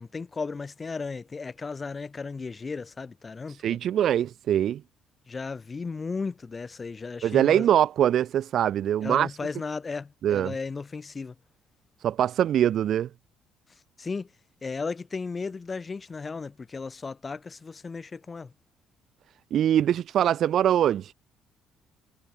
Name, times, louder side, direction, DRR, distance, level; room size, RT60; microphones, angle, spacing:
voice 1, 0.0-3.8 5.3-7.7 9.0-11.4 14.0-14.3 14.6-18.5, left 4 dB, 20° left, 4.8 m, -35 dB
voice 2, 3.6-4.8 7.2-9.3 10.2-10.5 12.0-13.1 19.5-21.1, right 10 dB, 55° right, 1.3 m, -23 dB
cardioid pair, 145°, 0 cm